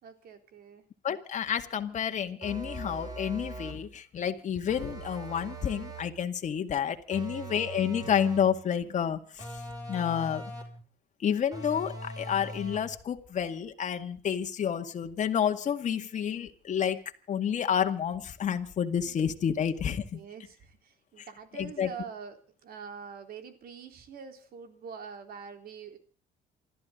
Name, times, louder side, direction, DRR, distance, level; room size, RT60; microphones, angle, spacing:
voice 1, 0.0-0.8 7.2-7.5 19.0-19.2 20.1-26.0, right 6 dB, 60° right, 7 dB, 3.8 m, -45 dB
voice 2, 1.0-9.5 9.9-10.4 11.2-17.0 17.3-20.2 21.2-21.3 21.6-21.9, left 8 dB, 45° left, 6 dB, 2.0 m, -30 dB
sound 1, 2.4-3.9 4.7-6.2 7.1-8.6 9.4-10.8 11.5-13.0, right 2 dB, 25° right, 5.6 m, -41 dB
28.5 x 13.5 x 3.8 m, 0.39 s
cardioid pair, 110°, 17 cm